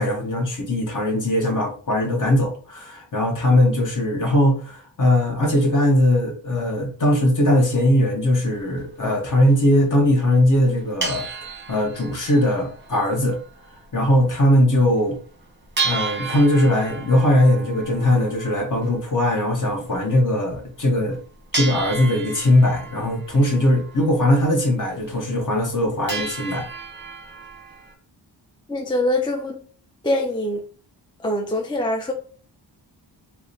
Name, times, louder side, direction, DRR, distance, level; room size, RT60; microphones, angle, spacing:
voice 1, 0.0-11.3 11.7-13.4 13.9-15.2 15.8-21.2 21.5-26.7, left 1 dB, 40° left, 1.0 m, -20 dB
sound 1, 8.4-8.6 9.1-9.2 9.4-9.6 10.3-10.4 10.6-13.8 14.0-14.1 14.5-14.6 15.0-15.1 15.8-20.3 21.0-21.1 21.5-24.5 24.9-25.0 25.3-25.8 26.1-27.9, right 4 dB, 25° right, 0.9 m, -33 dB
voice 2, 28.7-29.6 30.0-30.6 31.2-32.1, left 1 dB, 10° left, 0.3 m, -23 dB
2.8 x 2.1 x 3.9 m
wide cardioid pair, 95°, 46 cm